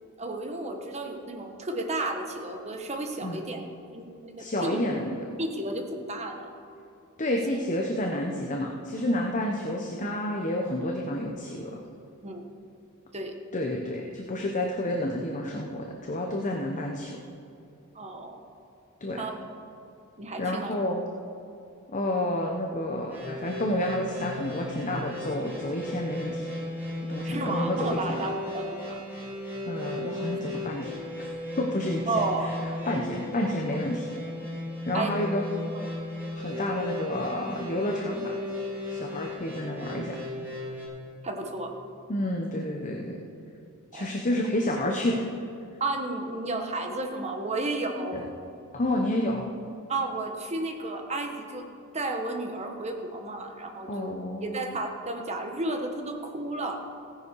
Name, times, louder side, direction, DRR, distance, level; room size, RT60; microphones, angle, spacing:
voice 1, 0.2-3.6 3.9-4.8 5.4-6.6 12.2-12.4 13.1-13.3 17.9-18.4 19.2-19.4 20.2-20.7 27.2-28.8 30.3-30.5 32.1-32.5 34.9-35.2 35.7-35.9 39.6-39.8 41.2-41.7 43.9-44.1 45.8-48.2 49.9-51.7 51.9-54.1 54.4-56.8, right 2 dB, 30° right, 3 dB, 1.4 m, -32 dB
voice 2, 4.4-5.2 7.2-11.8 13.5-17.2 19.0-19.3 20.4-21.0 21.9-26.5 27.1-28.2 29.7-31.0 31.6-32.1 32.4-32.5 32.9-34.1 34.9-35.4 36.3-38.4 38.9-40.2 42.1-43.2 43.9-45.2 48.1-48.2 48.7-49.5 53.9-54.6, left 1 dB, 35° left, 1 dB, 1.0 m, -30 dB
sound 1, 23.1-40.8, left 1 dB, 10° right, 3.7 m, -35 dB
16.0 x 10.0 x 4.8 m, 2.7 s
head